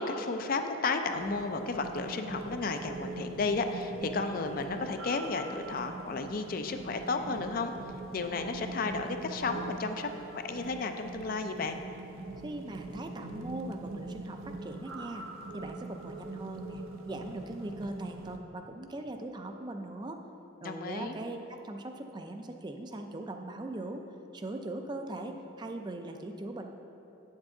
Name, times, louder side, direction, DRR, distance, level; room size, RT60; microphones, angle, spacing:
voice 1, 0.0-7.7 8.1-11.8 20.6-21.2, left 3 dB, 45° left, 7 dB, 0.4 m, -33 dB
sound 1, 1.0-18.4, right 2 dB, 80° right, 0.5 m, -42 dB
voice 2, 12.4-15.2 15.5-20.2 20.6-24.0 24.3-26.7, right 2 dB, 20° right, 5 dB, 0.4 m, -40 dB
8.6 x 7.2 x 3.8 m, 3.0 s
head